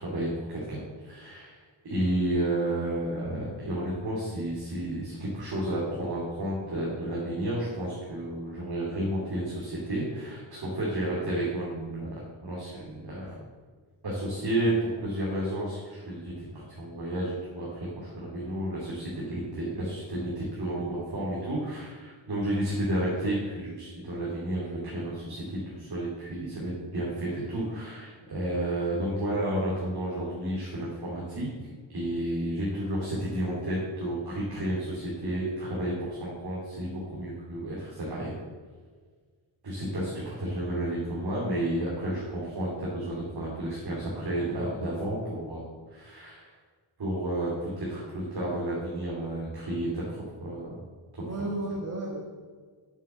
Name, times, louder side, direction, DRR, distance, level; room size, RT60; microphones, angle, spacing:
voice 1, 0.0-1.6 1.8-13.3 14.0-31.5 31.9-38.3 39.6-45.6 45.9-46.5 47.0-50.8 51.2-51.3, right 1 dB, 50° right, -7 dB, 2.6 m, -31 dB
voice 2, 51.2-52.2, right 2 dB, 30° right, -2 dB, 1.3 m, -34 dB
7.2 x 6.8 x 7.1 m, 1.6 s
wide cardioid pair, 160°, 50 cm